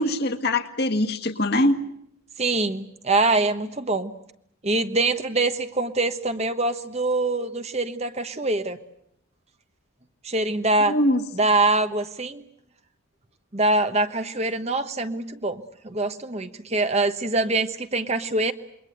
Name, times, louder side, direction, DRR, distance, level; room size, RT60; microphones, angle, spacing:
voice 1, 0.0-1.7 10.9-11.2, left 1 dB, 45° left, 6 dB, 1.7 m, -22 dB
voice 2, 2.4-4.1 4.6-8.8 10.2-11.0 11.3-12.4 13.5-18.5, right 2 dB, 30° right, 9 dB, 1.2 m, -24 dB
28.0 x 22.5 x 8.1 m, 0.74 s
head